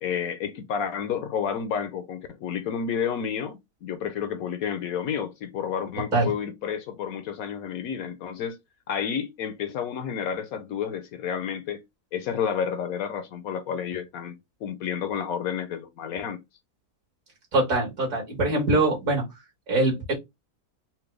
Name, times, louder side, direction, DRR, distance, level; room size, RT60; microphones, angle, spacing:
voice 1, 0.0-8.6 8.9-11.8 12.1-16.4, left 7 dB, 70° left, 1.0 m, -30 dB
voice 2, 17.5-19.2 19.7-20.1, right 2 dB, 60° right, 2.0 m, -23 dB
4.4 x 2.2 x 3.2 m
omnidirectional pair, 1.6 m